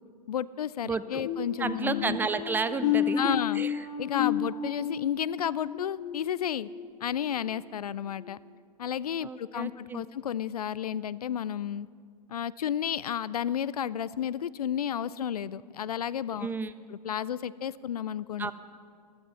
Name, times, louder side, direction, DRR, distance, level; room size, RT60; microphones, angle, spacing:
voice 1, 0.3-2.2 3.2-3.6 4.0-6.7 7.0-8.4 8.8-11.9 12.3-16.5 16.9-18.5, left 9 dB, 70° left, 19 dB, 0.4 m, -32 dB
voice 2, 0.9-1.2 1.6-3.7 4.2-4.3 9.2-10.1 16.4-16.7 18.4-18.5, right 4 dB, 10° right, 14 dB, 0.4 m, -32 dB
sound 1, 1.3-6.9 7.3-7.6 8.1-8.3, left 9 dB, 50° left, 2.3 m, -32 dB
16.5 x 12.5 x 5.7 m, 2.1 s
figure-of-eight pair, 95°, 21 cm